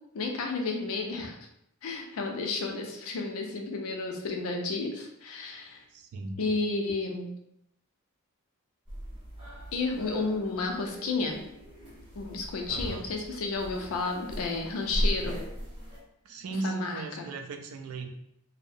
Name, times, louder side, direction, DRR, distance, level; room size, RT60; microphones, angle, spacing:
voice 1, 0.1-1.4 1.8-5.8 6.4-7.3 9.7-11.4 12.2-15.4 16.6-17.3, left 3 dB, 75° left, 3 dB, 0.4 m, -32 dB
voice 2, 5.9-6.5 12.7-13.0 16.2-18.1, right 3 dB, 80° right, 4 dB, 0.4 m, -37 dB
sound 1, 8.9-16.0, equal, 25° right, 0.6 m, -37 dB
2.7 x 2.0 x 2.5 m, 0.78 s
head